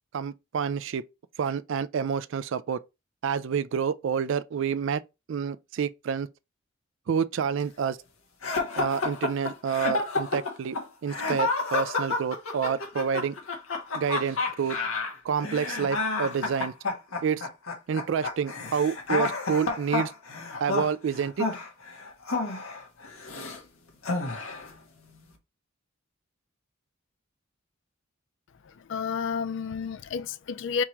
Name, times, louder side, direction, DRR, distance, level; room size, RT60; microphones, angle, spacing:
voice 1, 0.1-1.0 1.4-2.8 3.2-5.0 5.3-6.3 7.1-8.0 8.8-10.8 11.0-13.3 13.9-14.8 15.2-16.7 17.2-17.5 17.9-20.1 20.6-21.5, right 7 dB, 65° right, 0.3 m, -28 dB
sound 1, 8.4-23.6 24.0-24.7, left 3 dB, 85° left, 1.3 m, -30 dB
voice 2, 28.6-30.8, left 6 dB, 60° left, 0.4 m, -31 dB
3.6 x 2.9 x 4.4 m
head